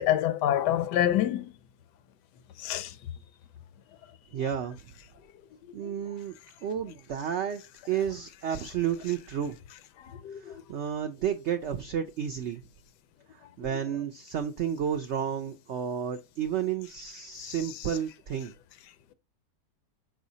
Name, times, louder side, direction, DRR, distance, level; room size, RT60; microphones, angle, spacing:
voice 1, 0.0-1.5 2.6-2.9 10.2-10.5 17.4-17.5, left 11 dB, 80° left, 1.2 m, -26 dB
voice 2, 4.3-4.8 5.7-6.3 6.6-9.6 10.4-12.6 13.3-18.5, right 8 dB, 80° right, 0.6 m, -32 dB
6.1 x 5.6 x 2.7 m
omnidirectional pair, 1.8 m